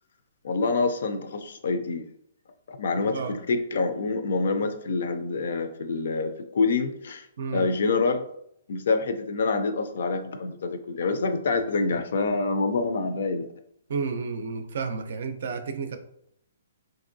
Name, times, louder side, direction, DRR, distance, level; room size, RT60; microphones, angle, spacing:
voice 1, 0.4-2.0 2.7-7.3 7.5-8.2 8.7-13.5, left 3 dB, 65° left, 8 dB, 0.4 m, -26 dB
voice 2, 7.4-7.7 13.9-16.0, right 5 dB, 60° right, 7 dB, 0.4 m, -31 dB
3.1 x 2.6 x 2.6 m, 0.72 s
hypercardioid pair, 160°, 0 cm